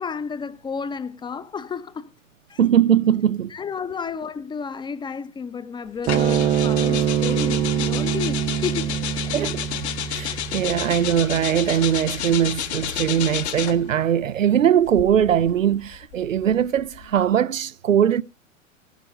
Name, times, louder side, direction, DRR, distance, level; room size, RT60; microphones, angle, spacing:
voice 1, 0.0-2.1 2.5-2.6 3.5-9.3 10.2-10.3, left 6 dB, 10° left, 0.8 m, -32 dB
voice 2, 2.6-3.5 9.3-9.7 10.1-18.2, right 9 dB, 75° right, 0.7 m, -20 dB
sound 1, 6.0-13.9 14.8-17.3, left 11 dB, 55° left, 1.7 m, -31 dB
sound 2, 6.1-12.7, right 9 dB, 15° right, 0.5 m, -25 dB
18.0 x 6.5 x 5.2 m
figure-of-eight pair, 100°, 40 cm